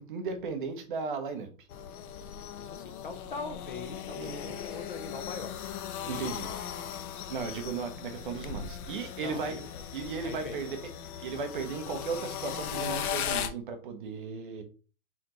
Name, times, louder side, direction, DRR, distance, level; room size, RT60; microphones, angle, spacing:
voice 1, 0.0-1.5 4.0-4.8 6.1-6.5 7.3-9.6 9.9-10.8 11.2-14.6, right 5 dB, 35° right, 0.7 m, -36 dB
sound 1, 1.7-13.5, left 9 dB, 80° left, 0.7 m, -38 dB
voice 2, 2.6-5.6 6.0-6.2 6.4-6.6 9.2-9.8 10.2-10.6, left 4 dB, 40° left, 0.4 m, -42 dB
4.3 x 3.9 x 2.9 m
hypercardioid pair, 170°, 43 cm